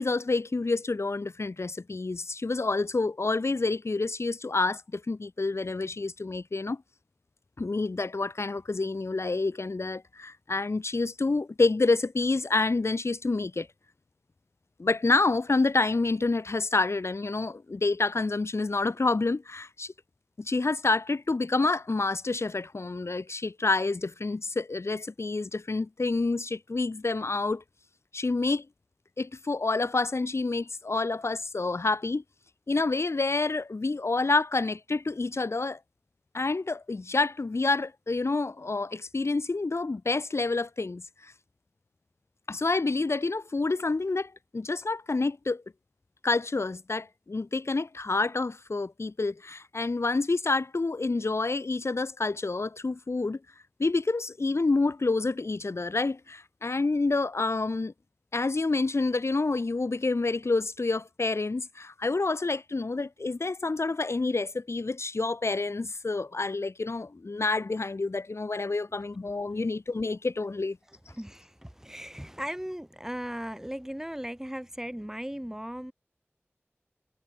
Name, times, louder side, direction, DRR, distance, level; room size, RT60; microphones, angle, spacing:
voice 1, 0.0-6.8 7.6-13.7 14.8-19.9 20.4-27.6 28.1-28.7 29.2-32.2 32.7-35.8 36.3-41.3 42.5-45.6 46.2-53.4 53.8-57.9 58.3-70.8, left 3 dB, 85° left, 2.7 m, -28 dB
voice 2, 71.1-75.9, equal, 10° right, 7.9 m, -37 dB
wide cardioid pair, 40°, 5 cm